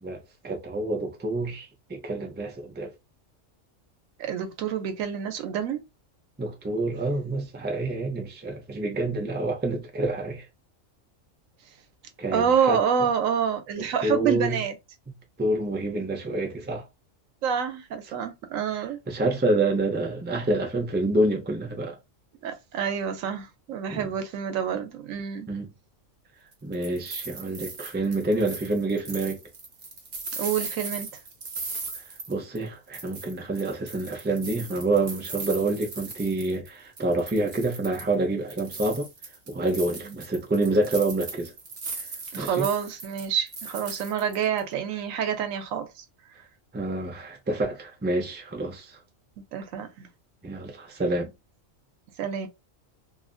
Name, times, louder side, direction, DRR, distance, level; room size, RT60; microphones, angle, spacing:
voice 1, 0.0-2.9 6.4-10.5 12.2-12.8 13.8-14.6 15.4-16.9 19.1-22.0 23.9-24.1 25.5-25.7 26.6-29.4 32.3-39.1 39.5-41.5 42.0-42.1 42.3-42.7 46.7-49.0 50.4-51.3, right 2 dB, 15° right, 0.4 m, -27 dB
voice 2, 4.2-5.8 12.3-14.8 17.4-19.0 22.4-25.5 30.4-31.1 40.0-40.2 42.3-46.0 49.5-50.1 52.2-52.5, right 7 dB, 85° right, 1.0 m, -27 dB
sound 1, 26.5-32.7 32.9-36.7 37.0-38.1 38.5-44.6, right 3 dB, 45° right, 0.9 m, -38 dB
2.7 x 2.5 x 2.3 m
omnidirectional pair, 1.4 m